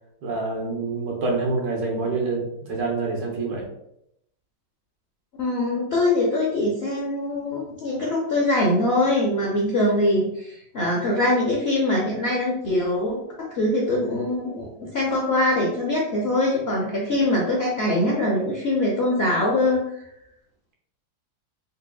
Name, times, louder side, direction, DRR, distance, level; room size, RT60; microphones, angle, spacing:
voice 1, 0.2-2.4 2.7-3.7, right 3 dB, 90° right, -1 dB, 1.7 m, -26 dB
voice 2, 5.4-19.8, left 1 dB, 70° left, -2 dB, 0.6 m, -23 dB
3.9 x 3.2 x 2.2 m, 0.77 s
omnidirectional pair, 1.9 m